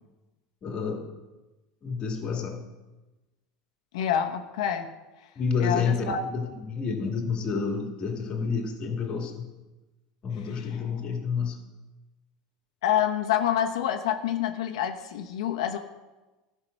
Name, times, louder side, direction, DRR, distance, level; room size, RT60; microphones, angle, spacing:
voice 1, 0.6-1.1 1.8-2.6 5.4-9.5 10.2-11.6, left 5 dB, 30° left, 2 dB, 2.0 m, -29 dB
voice 2, 3.9-4.9 5.6-6.2 12.8-15.8, left 9 dB, 85° left, 5 dB, 1.0 m, -27 dB
13.0 x 5.7 x 6.4 m, 1.1 s
supercardioid pair, 145°, 3 cm